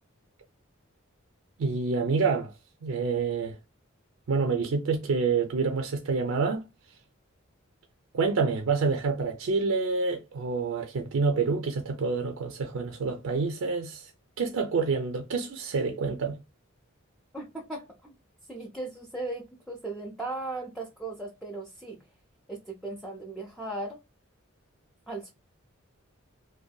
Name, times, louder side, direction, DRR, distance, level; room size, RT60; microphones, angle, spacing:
voice 1, 1.6-2.5 2.8-3.6 4.3-6.6 8.1-14.1 14.4-16.4, right 4 dB, 70° right, 0.4 m, -27 dB
voice 2, 17.3-18.1 18.5-22.0 22.5-24.0 25.1-25.3, right 2 dB, ahead, 0.4 m, -37 dB
2.6 x 2.2 x 2.2 m
head